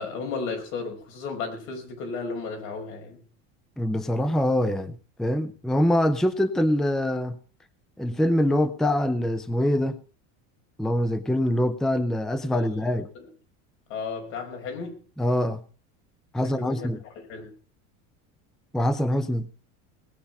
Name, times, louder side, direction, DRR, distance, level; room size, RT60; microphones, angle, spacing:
voice 1, 0.0-3.2 12.5-12.6 12.9-13.3 13.9-15.0 16.4-16.9 17.3-17.5, left 4 dB, 80° left, 5.5 m, -34 dB
voice 2, 3.8-7.4 8.0-10.0 10.8-13.1 15.2-15.6 16.3-17.0 18.7-19.5, left 1 dB, ahead, 0.6 m, -24 dB
19.5 x 8.6 x 5.4 m
supercardioid pair, 130°, 38 cm